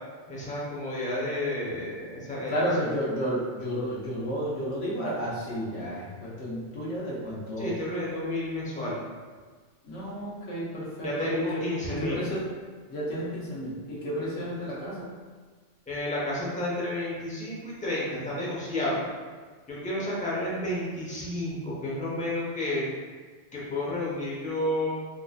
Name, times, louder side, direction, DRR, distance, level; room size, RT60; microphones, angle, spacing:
voice 1, 0.3-2.5 7.6-9.0 11.0-12.2 15.9-19.1 19.7-22.9 23.5-24.9, left 1 dB, 10° left, -7 dB, 0.6 m, -31 dB
voice 2, 2.5-7.8 9.8-12.4 12.9-15.1, equal, 85° left, -7 dB, 1.2 m, -32 dB
3.9 x 2.6 x 2.3 m, 1.5 s
omnidirectional pair, 1.2 m